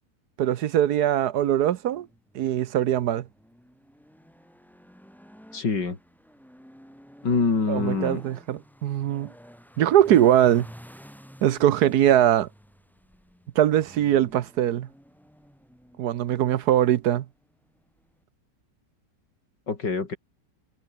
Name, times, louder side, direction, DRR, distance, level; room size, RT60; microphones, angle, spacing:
voice 1, 0.4-2.1 2.3-3.2 7.7-9.3 9.8-10.7 11.4-12.5 13.6-14.9 16.0-17.2, right 11 dB, 70° right, 1.3 m, -21 dB
sound 1, 1.7-18.2, equal, ahead, 4.8 m, -51 dB
voice 2, 5.5-6.0 7.2-8.2 19.7-20.2, left 4 dB, 85° left, 4.1 m, -25 dB
omnidirectional pair, 1.9 m